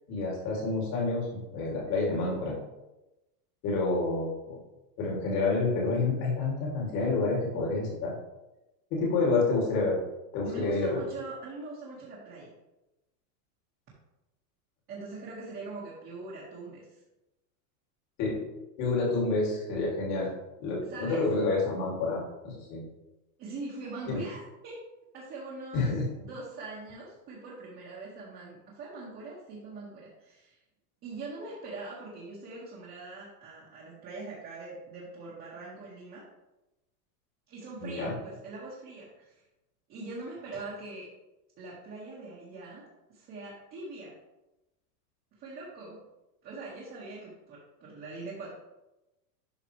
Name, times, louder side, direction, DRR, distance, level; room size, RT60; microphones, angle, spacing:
voice 1, 0.1-1.3 1.5-2.5 3.6-4.6 5.0-8.1 8.9-10.0 10.3-11.0 18.2-18.4 18.8-20.3 20.6-22.9 24.1-24.2 25.7-26.0 37.8-38.1, left 3 dB, 35° left, -3 dB, 2.7 m, -28 dB
voice 2, 10.4-12.5 14.9-16.9 20.9-21.2 23.4-24.8 25.1-25.9 26.2-30.6 31.0-36.2 37.5-39.3 39.9-41.1 41.6-44.1 45.4-46.0 46.4-48.5, right 3 dB, 25° right, -7 dB, 1.9 m, -42 dB
12.0 x 4.7 x 3.3 m, 0.98 s
supercardioid pair, 165°, 47 cm